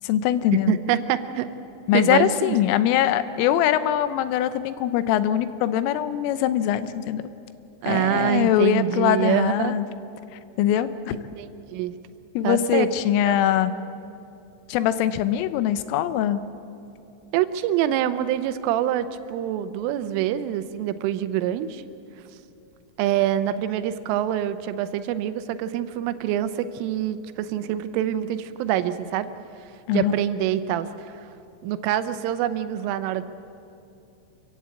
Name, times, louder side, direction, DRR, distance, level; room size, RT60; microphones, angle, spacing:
voice 1, 0.0-0.8 1.9-7.2 7.9-9.9 10.6-11.2 12.4-13.7 14.7-16.4 29.9-30.1, left 11 dB, 90° left, 13 dB, 3.4 m, -22 dB
voice 2, 0.7-1.5 1.9-2.6 7.8-9.8 11.4-11.9 12.4-12.9 13.3-13.4 17.3-21.8 23.0-29.3 29.9-31.2 31.6-33.2, right 11 dB, 85° right, 11 dB, 3.4 m, -25 dB
26.0 x 15.5 x 8.5 m, 2.7 s
omnidirectional pair, 5.7 m